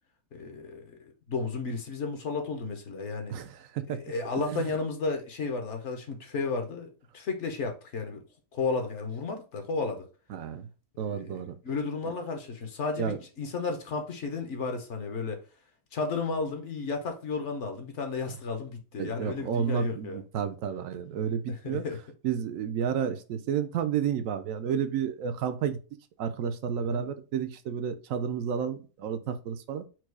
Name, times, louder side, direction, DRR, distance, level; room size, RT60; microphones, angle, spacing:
voice 1, 0.3-1.0 1.3-3.4 3.9-8.2 8.5-10.1 11.0-15.4 15.9-20.2 21.5-22.0 26.8-27.0, left 4 dB, 60° left, 1.0 m, -33 dB
voice 2, 3.3-4.0 4.3-4.6 10.3-10.7 11.0-11.6 13.0-13.2 19.0-21.8 22.2-25.8 26.2-29.8, right 8 dB, 75° right, 1.0 m, -31 dB
4.6 x 2.3 x 4.6 m
omnidirectional pair, 1.5 m